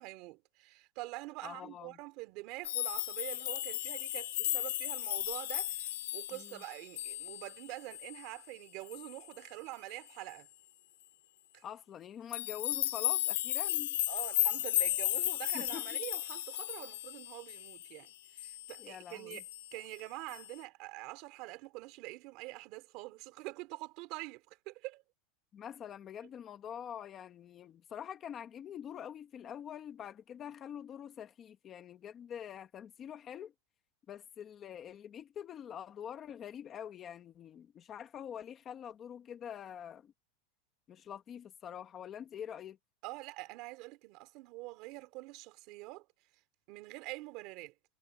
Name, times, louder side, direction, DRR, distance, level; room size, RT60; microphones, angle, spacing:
voice 1, 0.0-10.5 11.5-11.6 14.1-19.4 19.7-25.0 43.0-46.1 46.7-47.7, right 21 dB, 40° right, 3.2 m, -45 dB
voice 2, 1.4-2.0 6.3-6.6 11.6-14.0 15.5-16.0 18.8-19.4 25.5-33.5 34.1-40.1 40.9-42.8, left 9 dB, 20° left, 1.3 m, -45 dB
sound 1, 2.6-7.6 7.9-8.2 8.9-9.1 12.3-18.0 18.4-18.9 19.3-19.7 20.3-20.5, left 14 dB, 80° left, 3.3 m, -35 dB
supercardioid pair, 175°, 0 cm